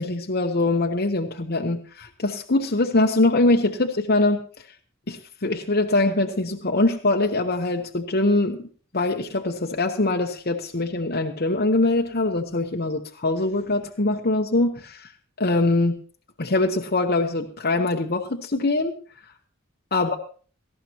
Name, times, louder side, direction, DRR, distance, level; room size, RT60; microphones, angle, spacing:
voice 1, 0.0-4.4 5.1-8.7 8.9-15.1 15.4-16.0 16.4-18.9 19.9-20.2, left 2 dB, 45° left, 2 dB, 0.9 m, -23 dB
18.5 x 14.0 x 2.9 m, 0.41 s
head